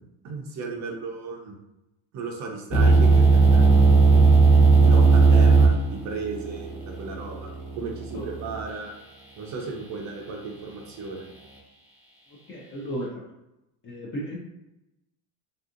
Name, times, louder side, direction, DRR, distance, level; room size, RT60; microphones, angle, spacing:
voice 1, 0.2-1.5 2.1-4.2 4.8-8.9 9.4-11.3, right 4 dB, 40° right, 1 dB, 0.4 m, -35 dB
sound 1, 2.7-8.6, right 4 dB, 5° right, 0.7 m, -17 dB
voice 2, 12.5-13.2 13.8-14.4, equal, 30° left, -3 dB, 0.3 m, -34 dB
3.4 x 2.6 x 2.5 m, 0.92 s
cardioid pair, 145°, 49 cm